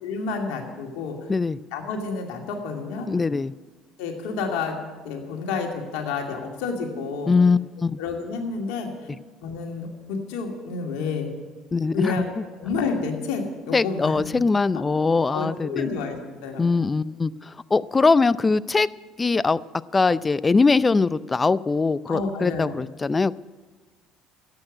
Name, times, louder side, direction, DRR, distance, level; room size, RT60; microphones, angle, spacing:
voice 1, 0.0-1.2 1.7-3.1 4.0-4.8 5.0-7.3 8.0-8.9 9.4-11.3 11.9-12.3 12.6-14.4 14.7-14.8 15.3-16.7 22.1-22.8, left 4 dB, 70° left, 2 dB, 2.4 m, -30 dB
voice 2, 3.1-3.5 7.3-8.0 11.7-12.1 13.7-15.9 16.6-17.3 17.7-18.9 19.2-19.6 19.9-23.4, left 4 dB, 25° left, 19 dB, 0.4 m, -21 dB
12.5 x 8.8 x 9.7 m, 1.3 s
hypercardioid pair, 65°, 0 cm